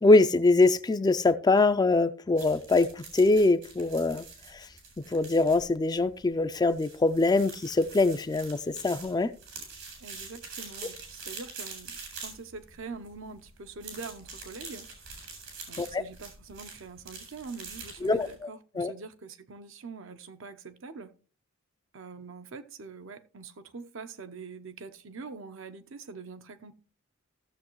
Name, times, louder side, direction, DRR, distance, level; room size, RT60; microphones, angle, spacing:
voice 1, 0.0-4.2 4.5-4.6 5.1-9.3 15.8-16.0 18.0-18.5 18.8-18.9, left 3 dB, 20° left, 0.4 m, -23 dB
sound 1, 2.4-18.4, right 4 dB, 85° right, 4.2 m, -45 dB
voice 2, 10.0-14.9 15.7-21.1 21.9-26.7, right 4 dB, 65° right, 0.8 m, -44 dB
15.0 x 7.1 x 3.0 m
head